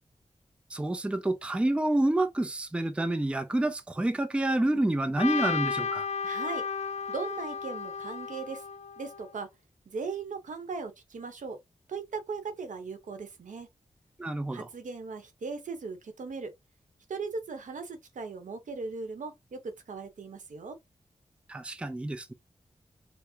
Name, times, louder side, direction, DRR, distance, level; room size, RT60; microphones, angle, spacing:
voice 1, 0.7-6.1 14.2-14.7 21.5-22.3, right 1 dB, 10° right, 0.4 m, -28 dB
Trumpet, 5.2-9.3, left 5 dB, 60° left, 0.4 m, -33 dB
voice 2, 6.2-6.6 7.1-8.6 9.0-9.5 9.9-11.6 11.9-13.7 14.5-16.5 17.1-20.8, right 4 dB, 85° right, 0.9 m, -38 dB
4.5 x 2.0 x 2.7 m
wide cardioid pair, 100°, 13 cm